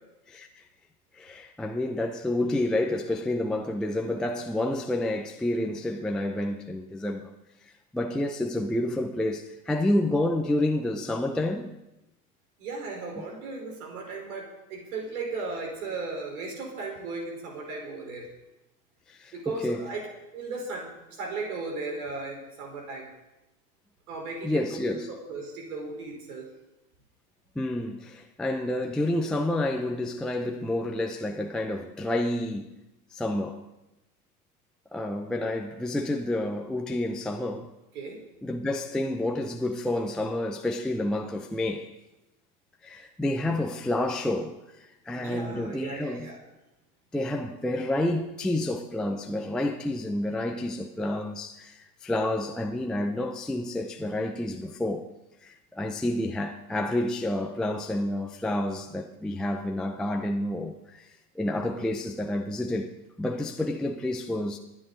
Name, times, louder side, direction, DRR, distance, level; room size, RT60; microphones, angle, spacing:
voice 1, 1.1-7.3 7.9-11.8 19.1-19.9 24.4-25.1 27.6-32.7 33.1-33.6 34.9-37.7 38.4-41.9 42.8-46.3 47.1-55.1 55.4-61.1 61.4-64.6, left 1 dB, ahead, 0.4 m, -29 dB
voice 2, 12.6-18.3 19.3-20.1 20.3-23.1 24.1-25.0 25.3-26.5 37.9-38.2 45.1-46.4, right 3 dB, 70° right, 4.4 m, -36 dB
24.0 x 10.0 x 3.9 m
hypercardioid pair, 115°, 46 cm